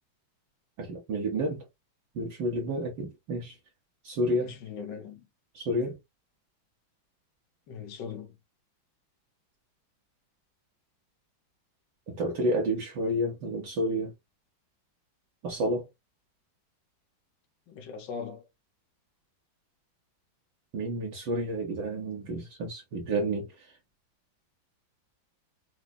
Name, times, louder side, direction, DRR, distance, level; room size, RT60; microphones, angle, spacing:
voice 1, 0.8-1.7 2.1-3.6 4.0-4.6 5.5-6.0 12.1-14.1 15.4-15.9 20.7-23.7, right 1 dB, 65° right, 1.4 m, -30 dB
voice 2, 4.4-5.3 7.7-8.4 17.7-18.5, left 6 dB, 65° left, 1.5 m, -40 dB
4.9 x 2.3 x 2.3 m
omnidirectional pair, 2.2 m